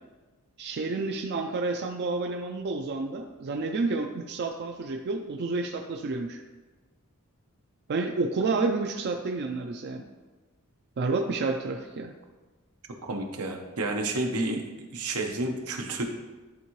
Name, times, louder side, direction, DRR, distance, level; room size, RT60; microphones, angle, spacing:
voice 1, 0.6-6.4 7.9-10.0 11.0-12.1, right 3 dB, 50° right, 4 dB, 0.4 m, -30 dB
voice 2, 13.0-14.6 14.9-16.0, right 2 dB, 85° right, 3 dB, 0.9 m, -30 dB
11.0 x 3.6 x 3.1 m, 1.2 s
head